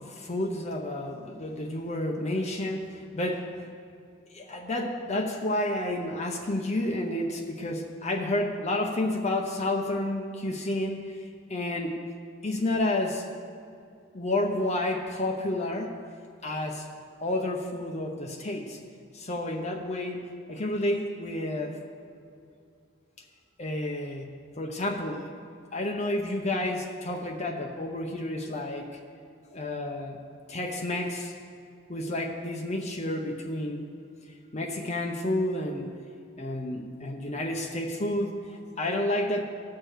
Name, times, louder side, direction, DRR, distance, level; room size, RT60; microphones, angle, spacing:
voice 1, 0.0-3.7 4.3-11.2 11.5-12.0 12.4-13.3 14.1-15.9 16.4-16.9 17.2-18.8 19.1-21.8 23.6-25.3 25.7-28.9 29.5-31.3 31.9-33.8 34.5-35.9 36.4-39.4, left 1 dB, 35° left, 2 dB, 0.7 m, -30 dB
17.5 x 6.6 x 4.6 m, 2.4 s
head